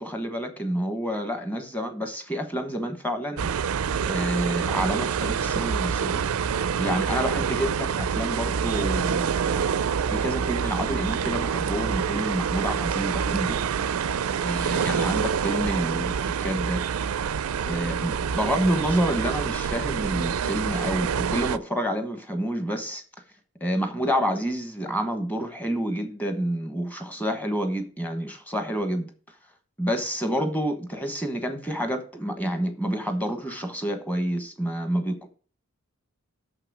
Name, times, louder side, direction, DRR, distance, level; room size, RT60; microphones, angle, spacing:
voice 1, 0.0-3.5 4.1-6.2 6.8-9.7 10.1-13.6 14.4-16.8 17.6-23.0 23.6-29.1 29.8-35.3, equal, 5° left, 1.1 m, -28 dB
sound 1, 3.4-21.6, right 7 dB, 75° right, 0.4 m, -27 dB
6.7 x 5.9 x 6.1 m
head